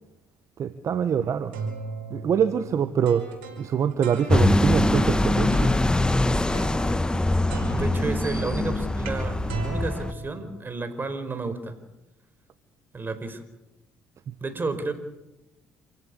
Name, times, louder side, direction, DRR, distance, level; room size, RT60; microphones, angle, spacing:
voice 1, 0.6-1.5 2.1-3.3 3.6-5.7 14.3-14.4, right 8 dB, 55° right, 11 dB, 1.4 m, -24 dB
sound 1, 1.2-4.8 5.5-6.0 6.5-7.2 7.5-11.0, right 4 dB, 90° right, 5.2 m, -38 dB
sound 2, 4.3-10.1, left 1 dB, 15° left, 1.5 m, -23 dB
voice 2, 7.7-11.7 12.9-13.4 14.4-14.9, right 3 dB, 30° right, 10 dB, 4.7 m, -31 dB
27.5 x 16.5 x 8.4 m, 0.96 s
hypercardioid pair, 60°, 6 cm